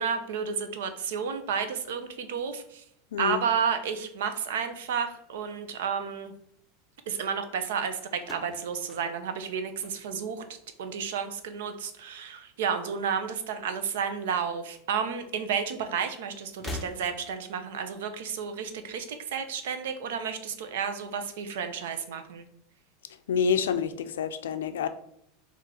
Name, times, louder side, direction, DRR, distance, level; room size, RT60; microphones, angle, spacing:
voice 1, 0.0-2.8 3.2-6.3 7.1-10.4 10.8-22.5, right 6 dB, 80° right, 8 dB, 0.5 m, -31 dB
voice 2, 3.1-3.4 23.3-24.9, left 7 dB, 90° left, 10 dB, 0.4 m, -27 dB
sound 1, 8.2-10.5 10.8-11.4 12.5-13.5 13.7-13.9 15.0-15.1 16.5-17.5, left 1 dB, 10° left, 0.6 m, -43 dB
3.7 x 2.4 x 4.2 m, 0.73 s
supercardioid pair, 115°, 0 cm